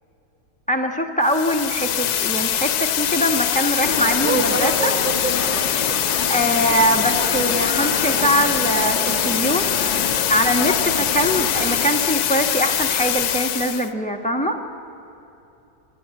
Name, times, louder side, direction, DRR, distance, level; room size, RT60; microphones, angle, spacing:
voice 1, 0.7-5.0 6.3-10.0 10.3-14.6, equal, 5° left, 3 dB, 1.3 m, -22 dB
sound 1, 1.2-13.9, left 10 dB, 70° left, 1.2 m, -23 dB
sound 2, 3.8-11.9, left 2 dB, 40° left, 2.1 m, -27 dB
28.5 x 13.5 x 8.4 m, 2.9 s
omnidirectional pair, 1.8 m